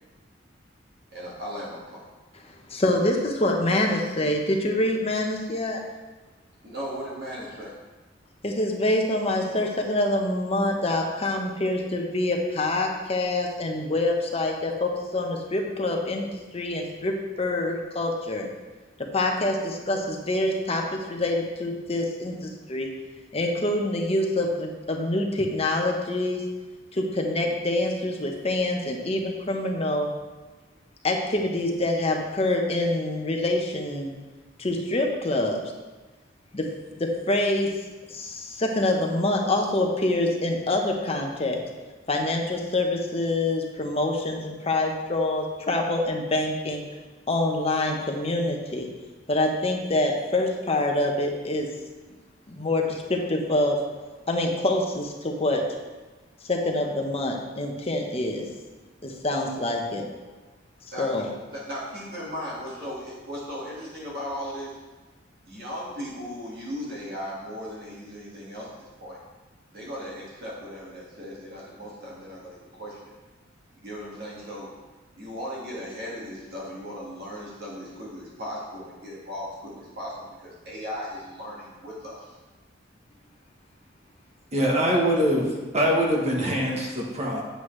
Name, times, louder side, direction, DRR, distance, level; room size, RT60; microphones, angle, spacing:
voice 1, 1.1-2.0 6.6-7.7 60.9-61.1 61.5-64.8 65.5-69.2 69.7-73.1 73.7-74.7 75.1-82.4, equal, 55° right, -6 dB, 1.9 m, -37 dB
voice 2, 2.7-5.8 8.4-16.3 16.5-18.5 19.0-22.9 23.3-26.4 26.9-30.1 31.0-34.1 34.6-35.6 36.5-36.7 37.0-37.7 38.1-41.6 42.1-46.8 47.3-48.9 49.3-51.7 52.5-53.8 54.3-55.6 56.4-58.5 59.0-60.0 61.0-61.2, left 1 dB, 30° left, 1 dB, 1.0 m, -26 dB
voice 3, 84.5-87.4, equal, 35° right, -2 dB, 1.2 m, -23 dB
8.0 x 7.9 x 3.3 m, 1.2 s
head